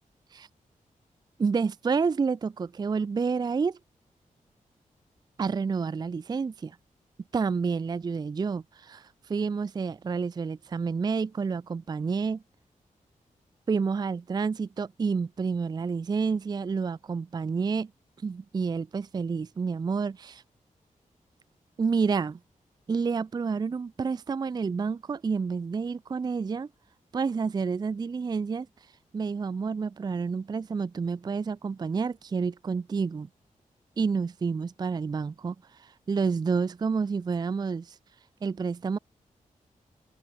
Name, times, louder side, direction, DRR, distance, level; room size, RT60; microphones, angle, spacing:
voice 1, 1.4-3.8 5.4-6.8 7.3-12.4 13.7-17.9 18.2-20.4 21.8-22.4 22.9-26.7 27.1-28.7 29.1-33.3 34.0-38.0 38.4-39.0, right 5 dB, 30° right, 0.4 m, -29 dB
open air
wide cardioid pair, 155°, 14 cm